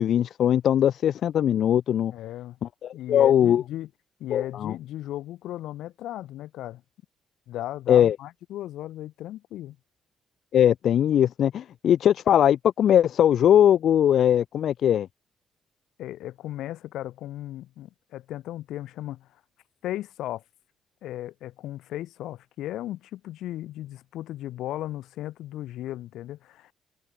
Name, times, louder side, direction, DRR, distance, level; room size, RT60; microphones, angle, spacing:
voice 1, 0.0-2.1 2.6-3.6 4.3-4.7 7.9-8.2 10.5-15.1, left 10 dB, 65° left, 0.6 m, -20 dB
voice 2, 2.1-2.6 2.9-3.9 4.2-6.8 7.5-9.8 16.0-19.3 19.8-20.4 21.0-26.7, left 14 dB, 85° left, 4.6 m, -36 dB
cardioid pair, 90°, 0 cm